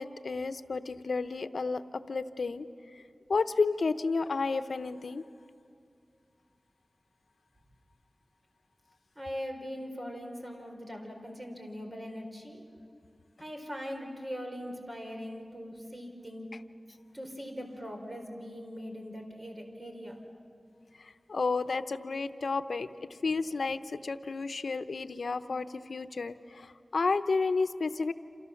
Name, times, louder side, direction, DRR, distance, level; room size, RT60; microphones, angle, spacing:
voice 1, 0.0-2.7 2.9-3.0 3.3-5.2 21.0-22.9 23.2-28.1, left 4 dB, 80° left, 11 dB, 0.8 m, -31 dB
voice 2, 9.2-12.6 13.4-16.5 17.1-20.2, equal, 25° right, 3 dB, 4.3 m, -41 dB
28.0 x 28.0 x 7.2 m, 2.4 s
wide cardioid pair, 70°, 0 cm